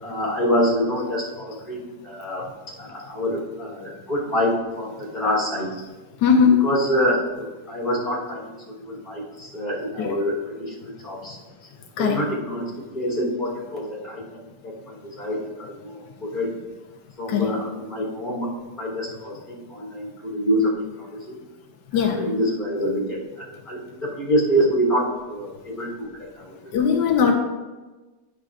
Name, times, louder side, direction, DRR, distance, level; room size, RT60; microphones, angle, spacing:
voice 1, 0.0-2.4 2.8-5.7 6.6-8.5 8.8-11.4 12.0-16.5 17.2-18.5 18.8-20.6 21.0-21.4 22.0-26.9, equal, 25° left, -8 dB, 2.6 m, -26 dB
voice 2, 6.2-6.6 10.0-10.2 12.0-12.2 17.3-17.5 21.9-22.2 26.7-27.3, left 6 dB, 85° left, 2 dB, 1.4 m, -19 dB
10.0 x 6.3 x 2.4 m, 1.2 s
omnidirectional pair, 1.8 m